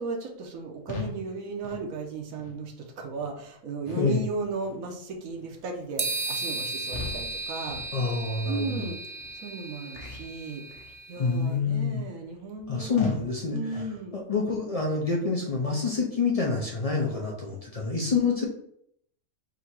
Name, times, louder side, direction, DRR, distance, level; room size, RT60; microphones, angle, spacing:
voice 1, 0.0-7.8 8.5-9.0 9.3-10.6 11.1-13.1 13.5-14.2, right 3 dB, 80° right, 3 dB, 1.2 m, -35 dB
sound 1, 0.9-1.2 1.6-1.9 2.4-2.6 3.1-3.3 3.9-4.2 4.6-4.9 5.4-5.6 6.1-6.3 6.9-7.3 7.7-8.0 8.4-8.6 9.2-9.3 9.9-10.3 10.7-11.0 11.5-11.7 12.2-12.3 13.0-13.3 13.7-14.0, left 4 dB, 35° left, 0.7 m, -39 dB
sound 2, 6.0-11.3, right 3 dB, 55° right, 0.6 m, -35 dB
voice 2, 7.9-8.9 11.2-12.0 12.7-13.6 14.1-18.5, left 4 dB, 65° left, -1 dB, 0.3 m, -27 dB
3.8 x 2.7 x 4.5 m, 0.70 s
omnidirectional pair, 1.4 m